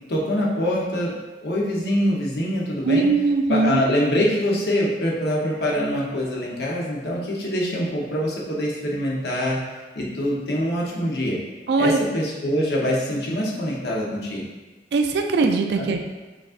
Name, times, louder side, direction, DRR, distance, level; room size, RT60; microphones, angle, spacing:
voice 1, 0.1-3.1 3.5-9.6 9.9-11.4 11.8-14.4 15.8-15.9, equal, 65° left, -3 dB, 0.9 m, -24 dB
voice 2, 2.8-3.8 11.7-12.0 14.9-16.0, right 3 dB, 70° right, 5 dB, 0.3 m, -20 dB
5.1 x 3.8 x 2.5 m, 1.2 s
head